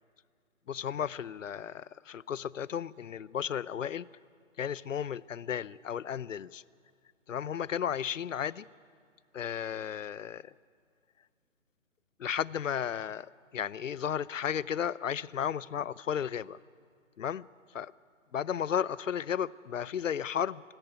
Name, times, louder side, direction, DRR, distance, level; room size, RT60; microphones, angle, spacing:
voice 1, 0.7-4.1 4.6-6.6 7.3-8.7 9.3-10.5 12.2-16.6 17.2-17.5 17.7-17.9 18.3-20.6, left 8 dB, 70° left, 21 dB, 0.6 m, -34 dB
25.5 x 11.0 x 9.5 m, 2.2 s
figure-of-eight pair, 150°, 40 cm